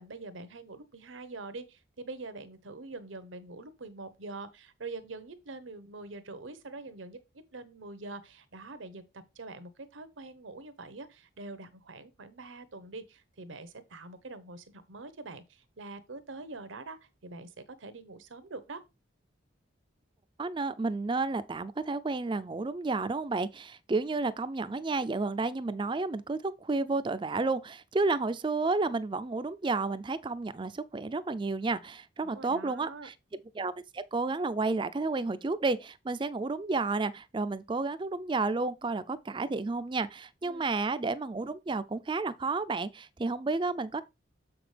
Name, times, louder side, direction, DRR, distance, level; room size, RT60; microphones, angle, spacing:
voice 1, 0.0-9.0 9.3-17.5 17.8-18.8 32.2-33.1 40.4-40.7, right 3 dB, 85° right, 1.0 m, -44 dB
voice 2, 20.4-33.1 33.6-44.0, right 3 dB, 25° right, 0.4 m, -31 dB
7.2 x 6.0 x 3.3 m
head